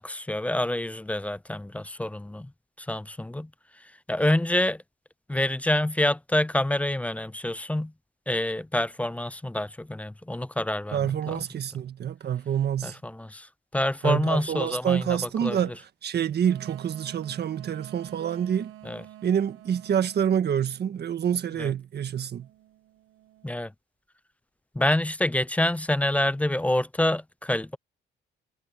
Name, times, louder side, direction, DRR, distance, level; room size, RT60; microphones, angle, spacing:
voice 1, 0.0-2.5 2.8-3.5 3.8-4.8 5.3-7.9 8.3-11.4 12.8-15.6 18.8-19.0 21.6-21.7 23.4-23.7 24.7-27.8, left 1 dB, 5° left, 0.5 m, -27 dB
voice 2, 10.9-13.0 14.0-18.7 19.2-22.5, right 9 dB, 55° right, 1.6 m, -27 dB
sound 1, 13.9-15.1 16.4-20.9 22.4-23.5, right 14 dB, 90° right, 1.2 m, -49 dB
cardioid pair, 90°, 20 cm